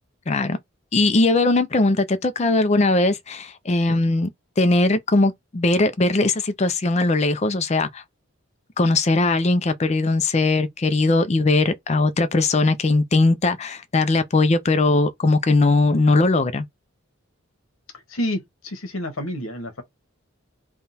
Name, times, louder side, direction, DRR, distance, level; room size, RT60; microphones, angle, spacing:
voice 1, 0.3-0.6 0.9-4.3 4.6-8.0 8.8-16.7, left 2 dB, 30° left, 0.5 m, -19 dB
voice 2, 17.9-19.8, left 1 dB, 75° left, 1.1 m, -29 dB
3.5 x 2.3 x 4.1 m
head